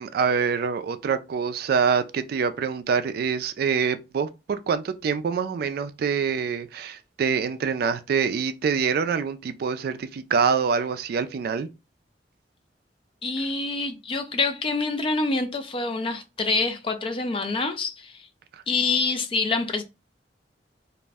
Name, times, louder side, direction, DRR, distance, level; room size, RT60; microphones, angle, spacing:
voice 1, 0.0-11.7, right 6 dB, 60° right, 0.3 m, -25 dB
voice 2, 13.2-18.3 18.7-19.8, left 3 dB, 30° left, 0.4 m, -26 dB
2.4 x 2.0 x 3.4 m
head